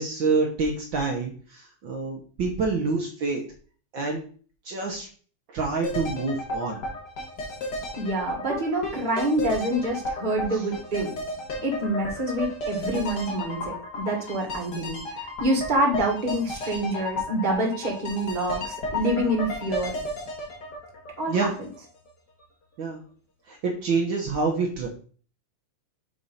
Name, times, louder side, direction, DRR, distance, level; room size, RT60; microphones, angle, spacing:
voice 1, 0.0-3.4 3.9-4.2 4.6-5.1 5.5-6.8 21.3-21.5 22.8-23.0 23.5-24.9, right 4 dB, 90° right, 1 dB, 1.0 m, -27 dB
sound 1, 5.8-21.8 22.1-22.2, left 1 dB, 40° left, 2.0 m, -33 dB
voice 2, 8.0-11.1 11.6-19.9 21.2-21.4, right 1 dB, 25° right, 0 dB, 1.1 m, -27 dB
6.7 x 4.1 x 5.5 m, 0.43 s
omnidirectional pair, 3.7 m